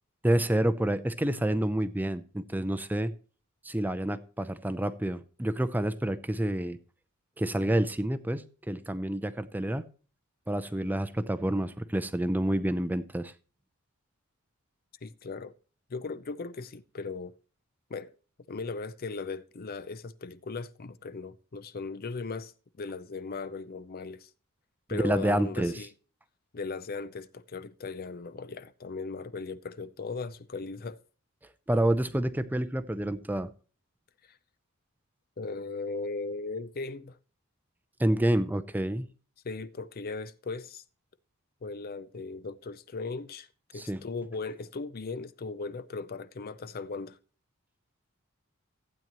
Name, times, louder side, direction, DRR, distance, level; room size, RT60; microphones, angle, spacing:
voice 1, 0.2-3.1 3.6-6.8 7.4-9.9 10.5-13.3 24.9-25.8 31.7-33.5 38.0-39.0 43.8-44.0, right 1 dB, 10° right, 0.5 m, -28 dB
voice 2, 15.0-15.5 15.9-17.3 17.9-18.1 18.5-22.5 22.8-24.3 24.9-25.9 26.5-31.0 34.3-34.4 35.4-37.2 39.4-40.8 41.6-43.5 43.7-47.2, left 4 dB, 45° left, 0.6 m, -38 dB
15.0 x 8.9 x 3.0 m
head